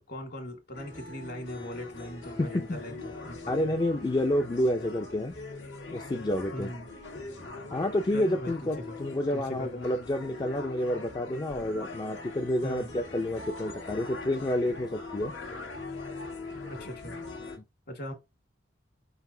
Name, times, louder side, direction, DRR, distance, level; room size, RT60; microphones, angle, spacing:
voice 1, 0.0-3.5 6.5-6.9 8.1-9.0 9.3-9.9 12.6-12.9 16.7-17.1 17.9-18.1, equal, 60° left, 1.8 m, -40 dB
sound 1, 0.7-17.6, left 3 dB, 90° left, 1.5 m, -42 dB
voice 2, 2.4-2.8 3.5-5.3 5.9-6.7 7.7-15.3, left 1 dB, 25° left, 0.4 m, -29 dB
4.9 x 4.0 x 2.6 m
head